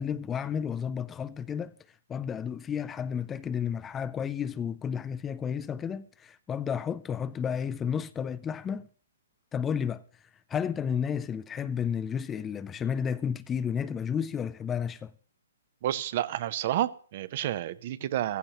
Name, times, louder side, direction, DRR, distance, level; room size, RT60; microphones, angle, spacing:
voice 1, 0.0-1.7 2.1-8.9 9.5-10.0 10.5-15.1, left 7 dB, 15° left, 0.5 m, -32 dB
voice 2, 15.8-18.4, right 12 dB, 50° right, 0.7 m, -30 dB
15.0 x 14.5 x 2.9 m
hypercardioid pair, 135°, 0 cm